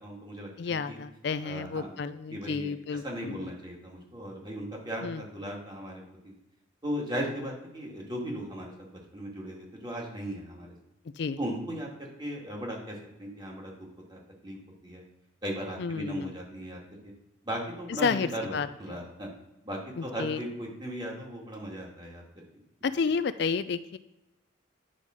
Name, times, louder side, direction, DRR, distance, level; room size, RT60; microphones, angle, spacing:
voice 1, 0.0-1.0 1.4-2.0 2.3-6.3 6.8-10.7 11.4-13.8 14.1-14.6 14.8-15.0 15.4-17.1 17.4-19.3 19.6-22.4, equal, 20° right, -1 dB, 2.2 m, -37 dB
voice 2, 0.6-3.5 5.0-5.2 11.2-11.4 15.8-16.3 17.9-18.7 20.0-20.4 22.8-24.0, left 5 dB, 55° left, 13 dB, 0.4 m, -31 dB
9.9 x 5.1 x 6.5 m, 0.95 s
head